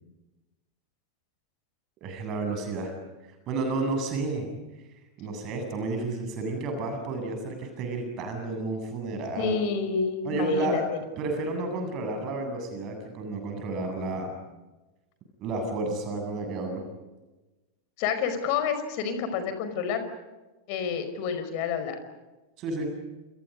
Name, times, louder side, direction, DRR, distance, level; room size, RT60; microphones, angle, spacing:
voice 1, 2.0-2.9 3.5-4.5 5.2-9.5 10.2-10.8 11.2-14.3 15.4-16.8 22.6-22.9, right 2 dB, 35° right, 5 dB, 7.9 m, -31 dB
voice 2, 9.4-10.8 18.0-20.1 20.7-22.0, left 6 dB, 45° left, 9 dB, 5.3 m, -29 dB
30.0 x 28.0 x 5.3 m, 1.1 s
figure-of-eight pair, 90°, 0 cm